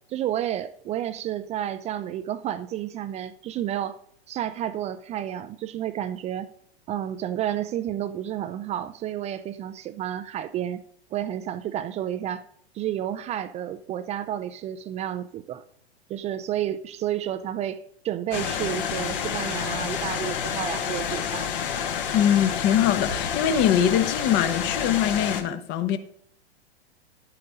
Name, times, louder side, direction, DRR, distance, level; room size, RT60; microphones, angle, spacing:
voice 1, 0.1-4.0 4.3-6.5 6.9-10.8 11.1-12.4 12.7-15.6 16.1-21.5, right 11 dB, 20° right, 0.5 m, -31 dB
sound 1, 18.3-25.4, left 7 dB, 55° left, 1.6 m, -29 dB
voice 2, 22.1-26.0, left 9 dB, 35° left, 1.1 m, -22 dB
12.0 x 8.9 x 3.8 m
hypercardioid pair, 105°, 33 cm